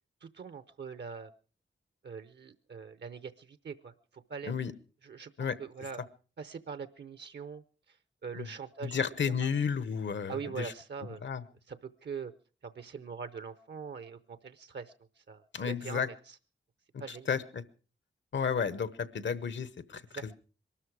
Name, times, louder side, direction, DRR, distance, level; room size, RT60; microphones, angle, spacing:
voice 1, 0.2-1.3 2.0-4.5 5.0-6.0 6.4-9.0 9.4-9.5 10.3-11.3 11.7-12.3 12.6-16.4 17.0-17.4 20.1-20.3, right 6 dB, 65° right, 13 dB, 0.7 m, -43 dB
voice 2, 8.8-10.7 11.2-11.4 15.5-16.1 17.3-17.6 18.3-20.0, left 6 dB, 80° left, 15 dB, 1.0 m, -32 dB
22.5 x 13.0 x 4.8 m, 0.39 s
wide cardioid pair, 135°, 19 cm